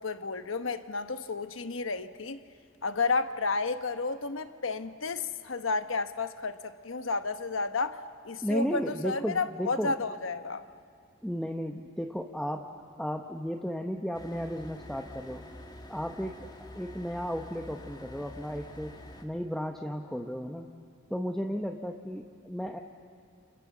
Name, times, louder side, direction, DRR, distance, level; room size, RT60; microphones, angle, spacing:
voice 1, 0.0-2.4 2.8-8.0 8.2-10.6, left 4 dB, 75° left, 1.1 m, -32 dB
voice 2, 8.4-10.0 11.2-12.7 13.0-15.4 15.9-16.5 16.7-19.0 19.2-20.7 21.1-22.8, equal, ahead, 0.9 m, -34 dB
sound 1, 14.1-19.2, left 1 dB, 20° left, 2.0 m, -47 dB
29.5 x 27.5 x 7.3 m
head